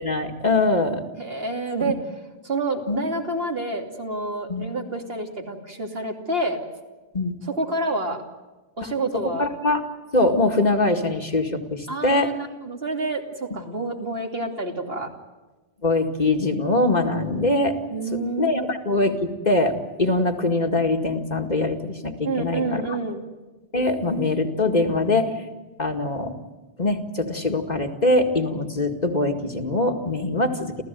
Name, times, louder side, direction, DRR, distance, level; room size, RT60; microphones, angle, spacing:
voice 1, 0.0-1.0 1.8-1.9 2.9-3.0 4.5-4.6 7.1-7.3 8.8-8.9 9.4-9.8 10.1-12.3 15.8-17.8 18.1-23.0 23.7-25.3 25.8-26.4 26.8-30.8, left 2 dB, 40° left, 4 dB, 2.1 m, -23 dB
voice 2, 1.2-2.0 2.4-6.6 7.5-8.2 8.8-9.5 11.9-13.2 13.5-15.1 17.9-18.6 22.2-23.2, right 2 dB, 65° right, 2 dB, 3.0 m, -28 dB
29.0 x 15.0 x 9.3 m, 1.2 s
omnidirectional pair, 1.1 m